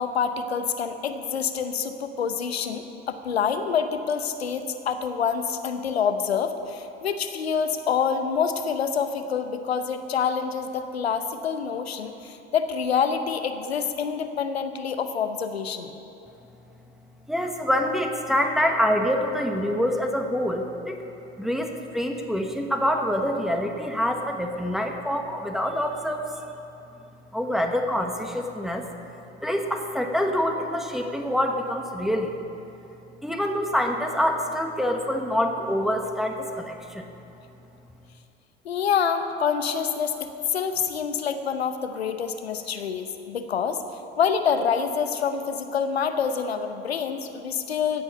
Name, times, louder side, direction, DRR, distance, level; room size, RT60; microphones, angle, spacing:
voice 1, 0.0-15.9 38.6-43.8 44.2-48.0, left 6 dB, 80° left, 9 dB, 0.8 m, -27 dB
voice 2, 17.3-21.0 21.4-26.3 27.3-28.9 29.4-32.3 33.2-37.1, equal, ahead, 3 dB, 1.2 m, -26 dB
16.0 x 8.1 x 5.5 m, 2.9 s
figure-of-eight pair, 65°, 31 cm